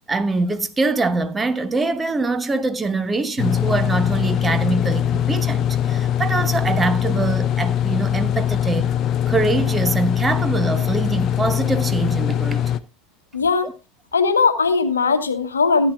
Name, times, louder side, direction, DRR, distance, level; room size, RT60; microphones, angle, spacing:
voice 1, 0.1-8.9 9.3-12.6 13.6-13.7, right 3 dB, 15° right, 0.9 m, -23 dB
sound 1, 3.4-12.8, left 10 dB, 40° left, 0.6 m, -22 dB
voice 2, 13.3-13.7 14.1-15.9, left 4 dB, 80° left, 1.0 m, -19 dB
15.5 x 9.2 x 2.5 m
figure-of-eight pair, 75°, 0 cm